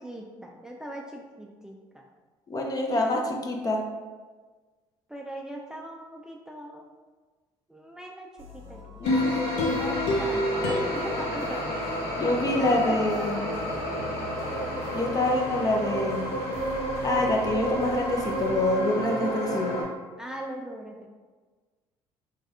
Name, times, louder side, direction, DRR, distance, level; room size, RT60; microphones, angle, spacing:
voice 1, 0.0-2.0 2.9-3.1 5.1-6.9 7.7-9.3 9.6-11.6 12.6-14.1 20.2-21.1, right 1 dB, 5° right, 0 dB, 0.3 m, -39 dB
voice 2, 2.5-3.8 9.0-9.7 12.2-13.4 14.9-16.3 17.0-19.8, left 2 dB, 35° left, 1 dB, 0.6 m, -26 dB
sound 1, 8.4-18.7, right 1 dB, 60° right, 0.7 m, -45 dB
sound 2, 9.0-19.8, equal, 65° left, 1.3 m, -31 dB
sound 3, 9.1-12.4 12.8-12.9, left 2 dB, 80° left, 0.5 m, -29 dB
3.4 x 3.1 x 2.3 m, 1.4 s
supercardioid pair, 80°, 11 cm